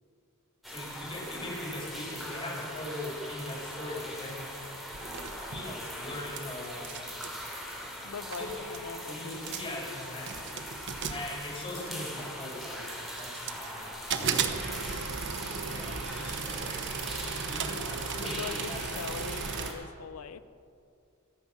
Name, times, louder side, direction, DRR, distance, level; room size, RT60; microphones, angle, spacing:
sound 1, 0.6-19.7, equal, ahead, 3.3 m, -41 dB
voice 1, 0.7-4.5 5.5-7.1 8.4-10.5 11.1-15.1 15.6-18.8, left 1 dB, 25° left, -3 dB, 4.9 m, -41 dB
sound 2, 4.9-6.4 6.6-7.4 8.0-8.1 8.3-8.9 9.3-9.8 10.3-12.0 12.6-13.7 14.1-19.7, right 6 dB, 55° right, 1.0 m, -36 dB
voice 2, 8.0-9.7 18.2-20.4, left 5 dB, 75° left, 14 dB, 0.6 m, -41 dB
23.5 x 10.0 x 6.0 m, 2.6 s
head